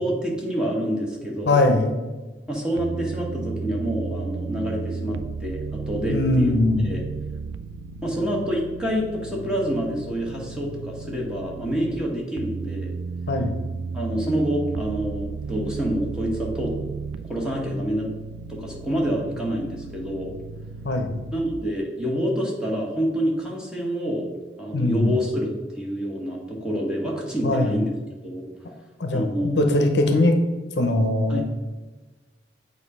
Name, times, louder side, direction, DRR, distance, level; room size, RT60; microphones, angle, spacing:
voice 1, 0.0-1.6 2.5-6.5 6.8-7.0 8.0-12.9 13.9-16.7 17.2-18.1 18.5-20.3 21.3-24.3 24.6-25.5 25.7-27.9 28.2-28.4 29.1-29.6 31.3-31.4, equal, 5° right, -2 dB, 1.2 m, -27 dB
voice 2, 1.5-2.0 6.1-6.9 13.3-13.5 20.8-21.2 24.7-25.2 27.4-27.7 29.0-30.3 30.8-31.4, left 2 dB, 65° left, 5 dB, 0.7 m, -21 dB
sound 1, 2.8-11.9 12.4-21.5, right 4 dB, 80° right, 0.3 m, -34 dB
8.0 x 2.7 x 5.4 m, 1.2 s
head